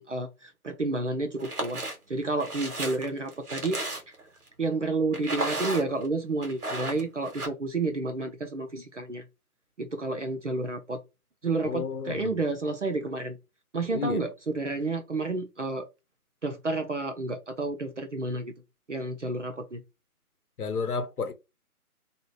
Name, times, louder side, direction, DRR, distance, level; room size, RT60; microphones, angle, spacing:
voice 1, 0.0-1.8 2.1-3.8 4.6-9.2 9.8-11.0 11.4-13.4 13.7-15.9 16.4-18.5 18.9-19.8, right 3 dB, 55° right, 0.5 m, -30 dB
sound 1, 1.4-2.0 2.4-4.3 5.1-6.1 6.4-7.5, right 2 dB, 75° right, 1.2 m, -33 dB
voice 2, 11.6-12.4 13.9-14.3 20.6-21.3, left 5 dB, 70° left, 0.8 m, -31 dB
2.7 x 2.4 x 3.0 m
figure-of-eight pair, 175°, 45 cm